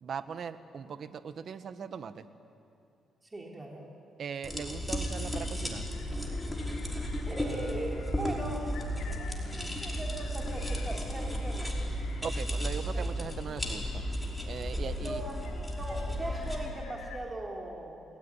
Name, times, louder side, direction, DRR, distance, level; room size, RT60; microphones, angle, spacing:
voice 1, 0.0-2.3 4.2-5.9 12.2-14.0 14.4-15.4, right 6 dB, 55° right, 11 dB, 1.4 m, -39 dB
voice 2, 3.2-3.9 7.2-8.7 9.2-11.7 12.9-13.1 15.0-18.0, right 2 dB, 20° right, -1 dB, 3.6 m, -40 dB
sound 1, 4.4-16.6, equal, 10° left, 5.2 m, -34 dB
sound 2, 5.0-17.3, left 6 dB, 80° left, 4.7 m, -54 dB
30.0 x 19.5 x 9.9 m, 2.6 s
cardioid pair, 90°, 0 cm